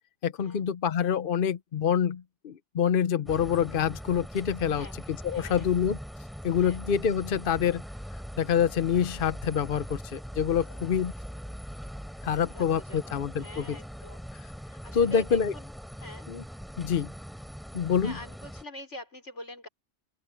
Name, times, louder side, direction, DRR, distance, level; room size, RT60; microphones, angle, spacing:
voice 1, 0.2-6.0 6.4-7.8 8.4-11.1 12.2-13.8 14.3-14.4 14.9-15.5 16.3-16.4 16.8-17.1 17.7-18.2, left 8 dB, 55° left, 0.9 m, -26 dB
sound 1, 3.3-18.6, equal, ahead, 4.3 m, -41 dB
voice 2, 5.3-5.6 6.6-6.8 10.6-10.9 12.3-13.1 13.4-14.2 14.6-15.7 16.0-16.3 17.8-19.7, left 1 dB, 90° left, 6.0 m, -45 dB
open air
omnidirectional pair, 1.2 m